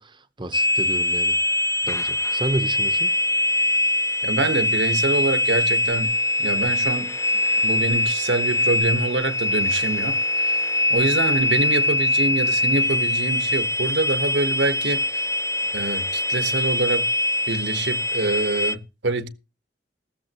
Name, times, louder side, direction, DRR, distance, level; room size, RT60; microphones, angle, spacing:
voice 1, 0.0-1.4 1.8-3.1, right 2 dB, 25° right, 1.0 m, -30 dB
sound 1, 0.5-18.7, left 1 dB, 15° left, 0.6 m, -23 dB
voice 2, 4.2-7.1 7.6-10.2 10.5-10.6 10.9-15.1 15.7-17.1 17.5-19.3, right 2 dB, 75° right, 1.4 m, -25 dB
14.5 x 13.0 x 3.0 m
head